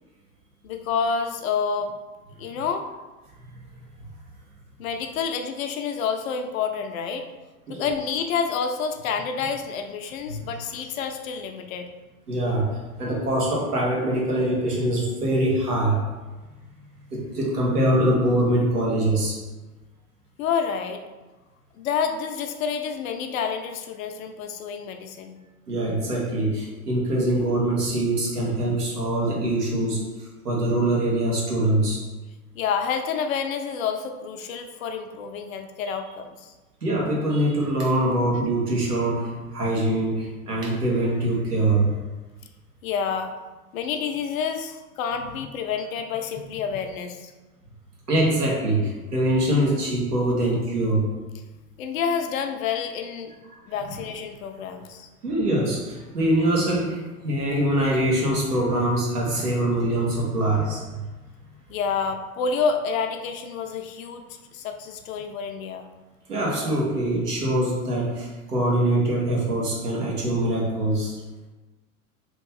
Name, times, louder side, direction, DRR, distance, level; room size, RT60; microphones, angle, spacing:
voice 1, 0.6-1.9 2.4-2.8 4.8-7.3 7.7-11.9 20.4-21.0 21.8-25.4 32.5-36.5 42.8-43.3 43.7-47.3 51.8-53.4 53.7-55.1 61.7-64.2 64.5-65.9, left 6 dB, 65° left, 6 dB, 0.6 m, -28 dB
voice 2, 12.3-12.7 13.0-16.0 17.1-19.4 25.7-32.0 36.8-41.9 48.1-51.1 53.9-54.0 55.2-60.8 66.3-71.2, right 1 dB, 90° right, -3 dB, 1.2 m, -23 dB
3.1 x 2.9 x 3.5 m, 1.2 s
hypercardioid pair, 95°, 45 cm